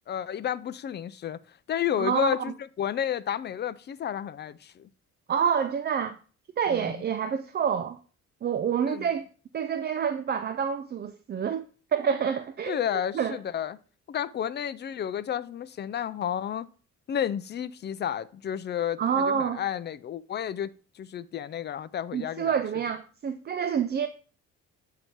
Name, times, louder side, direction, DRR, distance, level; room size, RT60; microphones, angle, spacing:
voice 1, 0.1-1.4 1.7-4.9 6.7-7.0 8.9-9.1 12.7-13.8 14.1-16.7 17.1-20.7 21.0-22.6, left 9 dB, 35° left, 0.4 m, -31 dB
voice 2, 2.0-2.3 5.3-6.2 6.6-8.0 8.4-9.3 9.5-11.6 11.9-12.8 13.1-13.4 19.0-19.6 22.1-24.1, right 7 dB, 35° right, 0.4 m, -27 dB
7.8 x 2.8 x 4.5 m
cardioid pair, 90°, 30 cm